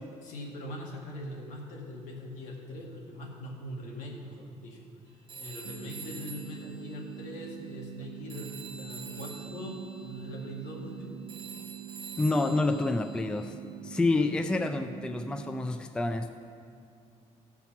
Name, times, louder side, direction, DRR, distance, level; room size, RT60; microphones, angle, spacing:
voice 1, 0.2-4.9 5.3-11.1, equal, 75° left, -1 dB, 2.1 m, -41 dB
Telephone, 5.3-8.0 8.3-13.5, right 4 dB, 40° right, 1.0 m, -47 dB
sound 1, 5.6-15.7, right 12 dB, 75° right, 0.5 m, -45 dB
voice 2, 12.2-13.5 13.8-16.3, left 2 dB, 5° left, 8 dB, 0.3 m, -28 dB
15.0 x 5.9 x 5.8 m, 2.4 s
cardioid pair, 165°, 13 cm